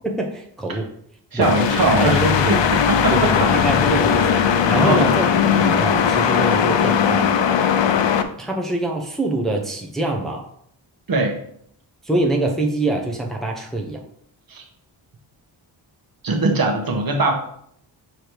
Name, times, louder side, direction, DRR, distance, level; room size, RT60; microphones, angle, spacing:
voice 1, 0.0-0.9 1.3-1.5 1.8-2.9 3.1-4.4 4.7-5.2 5.6-7.3 8.4-10.5 12.0-14.0, right 2 dB, ahead, 0 dB, 0.8 m, -24 dB
voice 2, 1.3-3.7 4.7-5.0 11.1-11.4 14.5-14.6 16.2-17.3, right 3 dB, 50° right, 3 dB, 1.2 m, -21 dB
sound 1, 1.4-8.2, left 7 dB, 70° left, 0.7 m, -18 dB
6.8 x 3.2 x 4.6 m, 0.67 s
wide cardioid pair, 125°, 45 cm